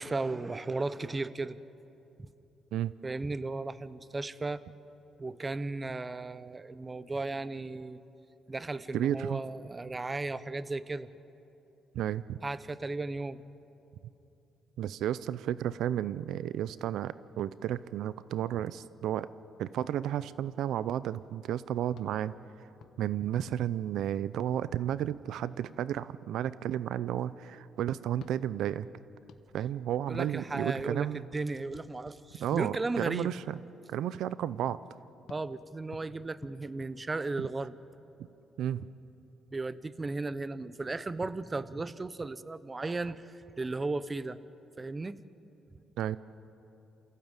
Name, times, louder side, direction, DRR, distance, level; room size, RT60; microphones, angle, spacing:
voice 1, 0.0-1.6 2.2-2.3 3.0-4.6 5.2-8.0 8.5-11.1 12.4-13.4 30.1-33.3 35.3-37.8 39.5-44.4 44.8-45.2 45.7-45.8, right 3 dB, 25° right, 15 dB, 0.8 m, -35 dB
voice 2, 8.9-9.4 11.9-12.4 14.8-19.3 19.6-22.3 23.0-28.9 29.5-31.2 32.4-33.6 33.9-34.8 38.6-38.9 46.0-46.2, right 11 dB, 80° right, 16 dB, 0.5 m, -32 dB
sound 1, 21.9-25.7 28.1-32.9 35.3-37.7, left 8 dB, 75° left, 1.1 m, -56 dB
28.5 x 16.0 x 9.0 m, 2.9 s
cardioid pair, 90°, 0 cm